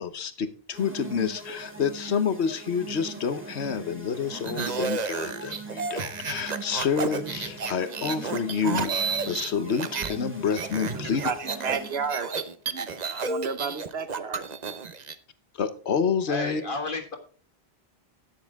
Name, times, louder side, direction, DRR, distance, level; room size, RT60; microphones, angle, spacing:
voice 1, 0.0-11.2 13.0-13.2 15.6-16.6, left 6 dB, 85° left, 1.3 m, -28 dB
sound 1, 0.7-12.3, right 2 dB, 10° right, 2.3 m, -41 dB
sound 2, 4.3-10.2 10.4-15.1, right 5 dB, 45° right, 0.9 m, -31 dB
voice 2, 10.9-12.3 12.7-14.5, right 5 dB, 70° right, 1.3 m, -32 dB
voice 3, 16.3-17.2, left 2 dB, 55° left, 1.9 m, -32 dB
12.5 x 9.5 x 3.6 m
omnidirectional pair, 1.1 m